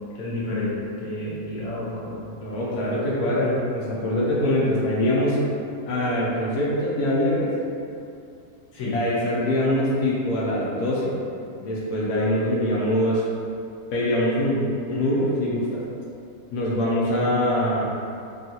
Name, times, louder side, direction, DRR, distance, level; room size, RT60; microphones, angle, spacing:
voice 1, 0.1-0.7 1.0-2.2 8.7-8.9 17.1-17.6, left 2 dB, 65° left, -8 dB, 1.2 m, -31 dB
voice 2, 2.4-5.4 5.8-7.5 8.9-11.1 11.6-13.2 13.9-15.8 16.5-17.9, left 1 dB, 90° left, -7 dB, 1.2 m, -23 dB
3.5 x 2.3 x 2.7 m, 2.5 s
omnidirectional pair, 1.6 m